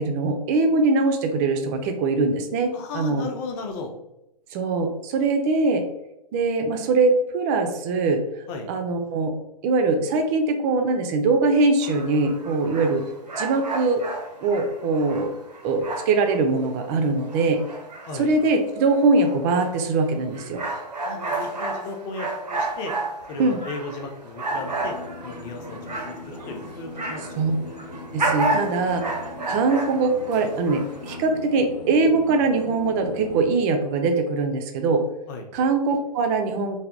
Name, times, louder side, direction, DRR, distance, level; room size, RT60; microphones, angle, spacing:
voice 1, 0.0-3.3 4.5-5.8 6.3-8.2 8.7-9.3 9.6-13.0 13.4-14.0 14.4-15.3 15.6-17.6 18.1-20.6 23.4-23.6 27.4-27.5 28.1-29.0 29.5-35.0 35.5-36.8, right 3 dB, 25° right, 5 dB, 0.3 m, -22 dB
voice 2, 2.7-3.9 8.5-8.7 18.1-18.3 21.0-22.9 23.3-24.9 25.2-27.3 35.3-35.5, left 3 dB, 30° left, 3 dB, 0.5 m, -35 dB
sound 1, 11.8-16.4 16.8-27.4 27.7-31.2, right 2 dB, 90° right, 0.6 m, -31 dB
sound 2, 24.5-33.5, left 3 dB, 85° left, 0.5 m, -39 dB
3.2 x 2.2 x 2.5 m, 0.88 s
figure-of-eight pair, 120°, 21 cm